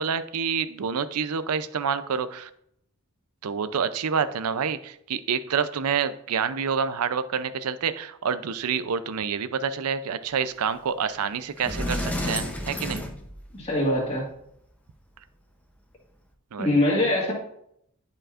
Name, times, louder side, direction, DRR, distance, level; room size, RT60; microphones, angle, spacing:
voice 1, 0.0-2.5 3.4-13.1 16.5-16.8, right 6 dB, 80° right, 0.5 m, -28 dB
Sliding door, 11.1-11.2 11.6-13.8, left 1 dB, 5° left, 0.6 m, -30 dB
voice 2, 13.5-14.2 16.6-17.3, left 1 dB, 25° left, 1.8 m, -23 dB
11.0 x 5.2 x 2.4 m
head